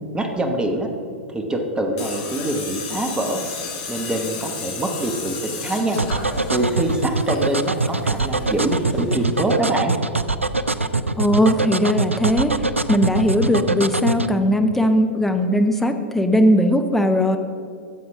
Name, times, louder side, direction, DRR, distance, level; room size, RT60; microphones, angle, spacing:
voice 1, 0.1-0.9 1.3-3.4 3.9-6.0 6.5-9.9, right 1 dB, 10° right, 4 dB, 1.1 m, -24 dB
Tools, 2.0-9.8, left 4 dB, 45° left, 1.9 m, -34 dB
sound 1, 6.0-14.3, right 3 dB, 90° right, 0.4 m, -22 dB
voice 2, 11.2-17.4, equal, 5° left, 5 dB, 0.7 m, -19 dB
13.0 x 7.9 x 3.6 m, 2.5 s
figure-of-eight pair, 100°, 7 cm